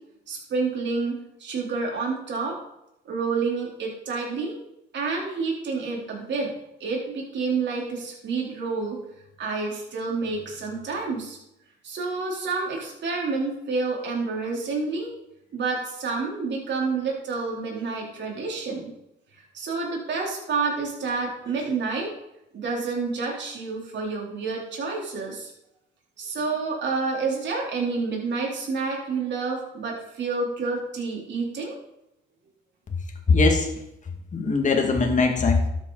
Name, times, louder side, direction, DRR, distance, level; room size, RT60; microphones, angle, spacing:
voice 1, 0.3-2.6 3.1-4.6 4.9-6.5 6.8-9.0 9.4-11.4 11.8-15.1 15.5-18.9 19.4-22.1 22.5-25.5 26.2-31.8, right 4 dB, 65° right, -2 dB, 3.7 m, -29 dB
voice 2, 33.3-33.7 34.3-35.7, left 3 dB, 40° left, 3 dB, 2.3 m, -21 dB
12.5 x 7.9 x 4.1 m, 0.83 s
cardioid pair, 90°, 20 cm